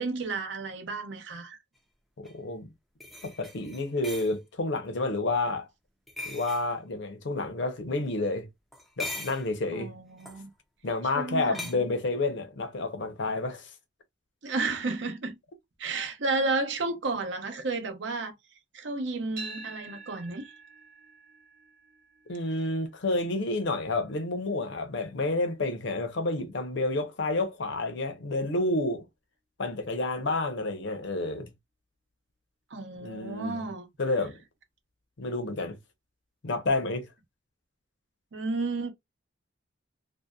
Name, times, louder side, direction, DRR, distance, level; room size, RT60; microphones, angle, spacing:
voice 1, 0.0-1.6 9.7-10.5 11.0-11.9 14.4-15.4 15.8-18.3 18.7-20.5 32.7-33.9 38.3-38.9, right 3 dB, 65° right, 0.6 m, -32 dB
voice 2, 2.2-2.7 3.2-5.7 6.3-8.5 9.0-9.9 10.8-13.7 22.3-29.0 29.6-31.5 33.0-33.7 34.0-34.4 35.2-35.8 36.4-37.1, left 2 dB, 65° left, 0.6 m, -30 dB
sound 1, 2.2-2.3 3.0-4.3 6.1-6.7 8.7-9.5 10.2-10.4 11.5-11.7, left 2 dB, ahead, 0.4 m, -39 dB
sound 2, 19.4-27.5, right 4 dB, 50° right, 1.0 m, -49 dB
2.7 x 2.0 x 2.2 m
head